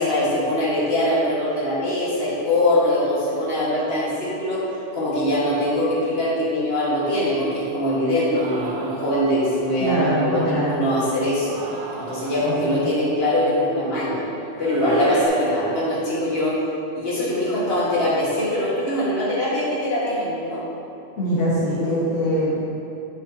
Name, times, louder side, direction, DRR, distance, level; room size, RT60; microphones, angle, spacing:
voice 1, 0.0-11.6 12.0-14.2 14.6-16.6 16.9-20.6, left 1 dB, 55° left, -8 dB, 1.9 m, -22 dB
sound 1, 8.3-10.0 11.3-13.0 14.6-15.3, right 3 dB, 75° right, 1.1 m, -33 dB
voice 2, 9.8-10.9 12.4-12.8 21.2-22.6, equal, 80° left, -8 dB, 1.7 m, -23 dB
8.6 x 6.6 x 2.8 m, 2.8 s
omnidirectional pair, 1.2 m